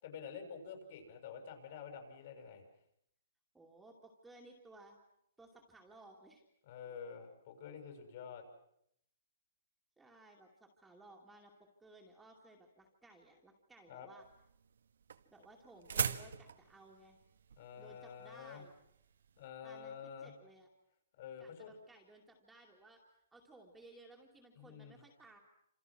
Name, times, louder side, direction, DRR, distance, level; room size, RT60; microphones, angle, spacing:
voice 1, 0.0-2.6 6.6-8.4 13.9-14.1 17.6-18.6 19.4-20.3 21.2-21.7 24.6-25.0, left 7 dB, 45° left, 5 dB, 6.9 m, -48 dB
voice 2, 3.5-5.0 5.4-6.4 10.0-14.2 15.3-17.2 17.8-18.7 19.6-20.7 21.4-23.0 23.3-25.4, right 2 dB, 5° right, -1 dB, 2.6 m, -59 dB
sound 1, 14.2-19.4, right 7 dB, 75° right, 1.5 m, -41 dB
29.0 x 27.5 x 6.2 m, 0.74 s
hypercardioid pair, 165°, 0 cm